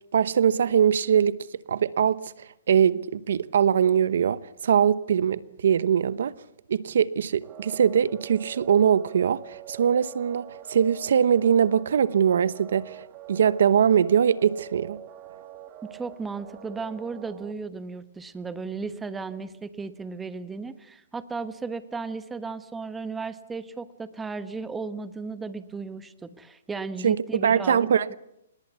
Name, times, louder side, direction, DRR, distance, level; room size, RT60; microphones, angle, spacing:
voice 1, 0.1-1.4 1.7-6.3 6.7-13.0 13.3-15.0 27.0-28.1, right 8 dB, 70° right, 0.9 m, -22 dB
sound 1, 7.4-17.5, right 13 dB, 30° right, 2.0 m, -45 dB
voice 2, 15.9-28.1, right 4 dB, 10° right, 1.1 m, -35 dB
27.0 x 20.0 x 8.3 m
hypercardioid pair, 155°, 0 cm